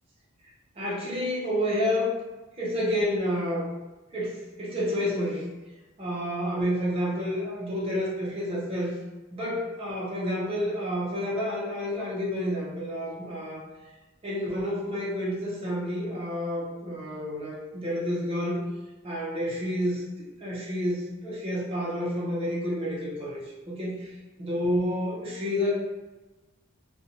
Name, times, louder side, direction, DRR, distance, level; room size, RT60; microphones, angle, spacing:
voice 1, 0.8-2.1 2.6-3.7 4.1-5.5 6.0-8.9 9.3-13.6 14.2-18.6 19.0-25.7, equal, 25° right, -7 dB, 0.5 m, -29 dB
2.6 x 2.2 x 2.8 m, 1.2 s
head